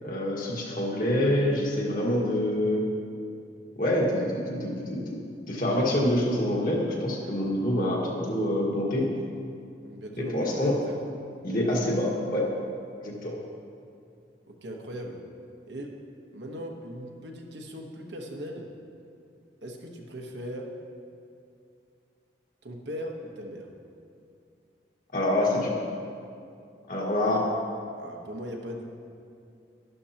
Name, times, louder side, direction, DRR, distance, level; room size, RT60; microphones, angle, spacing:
voice 1, 0.0-2.9 3.8-5.2 5.5-9.1 10.2-10.7 11.4-12.4 13.0-13.4 25.1-25.7 26.9-27.4, left 1 dB, 50° left, -3 dB, 1.8 m, -26 dB
voice 2, 9.8-11.0 14.5-15.2 15.7-16.0 16.3-18.7 19.6-20.7 22.6-23.7 28.0-28.8, equal, 75° right, 1 dB, 1.2 m, -39 dB
12.0 x 11.5 x 2.9 m, 2.5 s
head